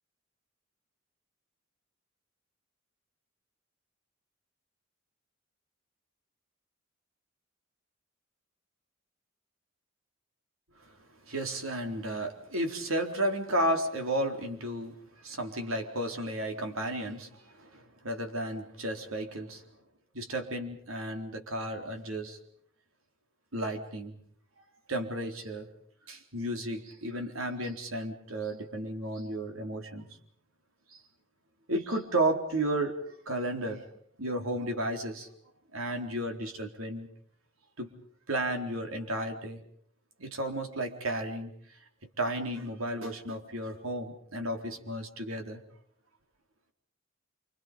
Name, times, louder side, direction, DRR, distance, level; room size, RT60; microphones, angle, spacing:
voice 1, 11.3-19.6 20.1-22.4 23.5-24.1 24.9-25.7 26.1-30.1 31.7-32.9 33.3-33.8 34.2-35.3 35.7-37.1 37.8-37.9 38.3-39.6 40.2-41.5 42.2-45.6, right 1 dB, 90° right, 4 dB, 4.1 m, -33 dB
29.0 x 25.5 x 5.4 m, 0.63 s
head